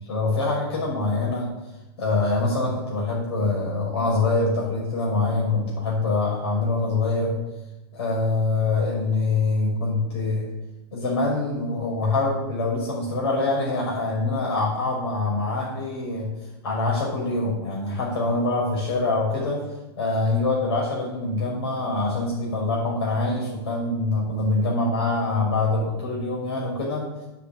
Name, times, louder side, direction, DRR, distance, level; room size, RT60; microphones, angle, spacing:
voice 1, 0.1-1.5 2.0-7.4 7.9-10.5 10.9-16.3 16.6-19.6 20.0-27.1, left 3 dB, 85° left, -4 dB, 5.8 m, -24 dB
10.5 x 8.2 x 8.7 m, 0.99 s
supercardioid pair, 150°, 13 cm